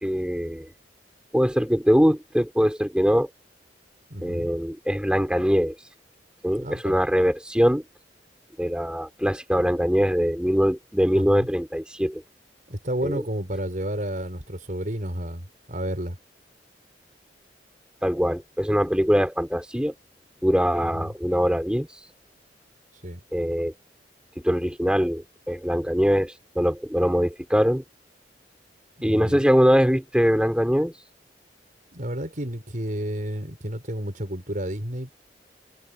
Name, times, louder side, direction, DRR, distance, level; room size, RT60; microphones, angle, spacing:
voice 1, 0.0-0.7 1.3-3.3 4.2-5.7 6.4-7.8 8.6-12.2 13.0-13.2 18.0-19.9 20.4-21.9 23.3-23.7 24.4-27.8 29.0-30.9, equal, 5° right, 4.2 m, -22 dB
voice 2, 4.1-4.5 6.6-7.0 11.1-11.5 12.7-16.2 20.8-21.1 23.0-23.2 29.0-29.5 31.9-35.1, equal, 50° right, 5.3 m, -31 dB
head